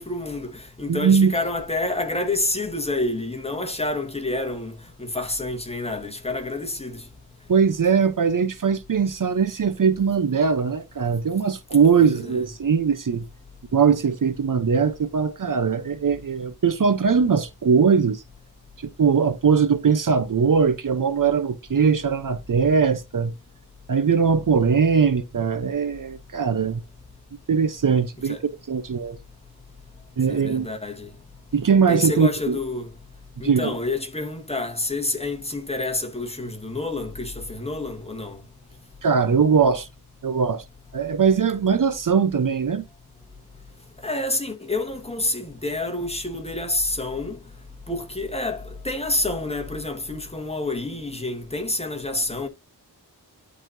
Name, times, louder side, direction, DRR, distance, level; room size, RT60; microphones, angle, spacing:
voice 1, 0.0-7.0 12.0-12.4 28.2-28.4 30.3-31.1 31.9-32.9 33.4-38.4 44.0-47.4 47.9-52.5, left 2 dB, 15° left, 1.5 m, -28 dB
voice 2, 0.9-1.3 7.5-13.3 13.7-18.2 19.0-23.3 23.9-26.8 27.5-28.4 28.7-29.2 30.2-30.7 31.5-32.6 33.4-33.8 39.0-39.9 40.2-40.6 40.9-42.9, right 6 dB, 55° right, 0.8 m, -20 dB
12.0 x 4.1 x 2.6 m
wide cardioid pair, 105°, 39 cm